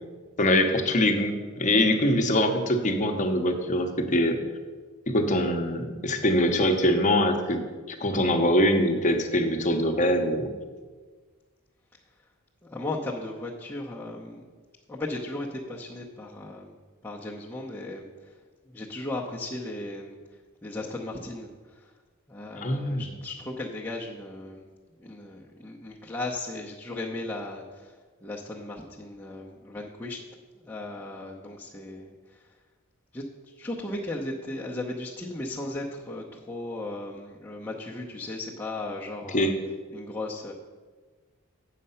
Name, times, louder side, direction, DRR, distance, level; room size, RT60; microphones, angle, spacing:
voice 1, 0.4-4.4 5.1-7.6 7.9-10.5 22.6-23.0 39.3-39.5, left 1 dB, 35° left, 5 dB, 0.9 m, -23 dB
voice 2, 12.6-14.4 14.9-16.8 17.0-18.4 18.7-20.2 20.6-21.9 22.3-24.7 25.0-28.0 28.2-30.2 30.6-32.5 33.1-39.5 39.9-40.5, left 2 dB, 10° left, -4 dB, 0.7 m, -36 dB
8.6 x 6.6 x 5.6 m, 1.4 s
head